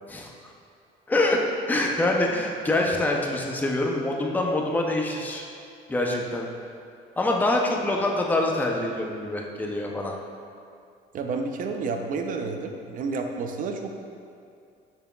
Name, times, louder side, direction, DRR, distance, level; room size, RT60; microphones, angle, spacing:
voice 1, 1.1-1.4 1.7-5.5 5.9-6.5 7.2-10.1, left 2 dB, 10° left, 0 dB, 0.6 m, -25 dB
voice 2, 11.1-13.9, right 4 dB, 55° right, 4 dB, 0.6 m, -30 dB
6.8 x 6.0 x 2.3 m, 2.4 s
cardioid pair, 110°, 17 cm